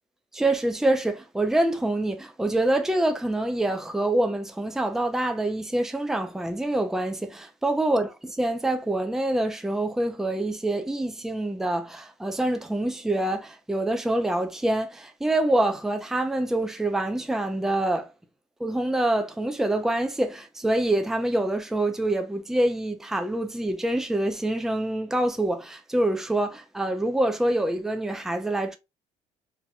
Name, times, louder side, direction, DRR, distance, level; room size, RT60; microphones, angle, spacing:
voice 1, 0.3-8.1 8.4-18.1 18.6-28.8, right 1 dB, 5° right, 0.5 m, -26 dB
4.2 x 2.8 x 2.2 m
cardioid pair, 130°, 13 cm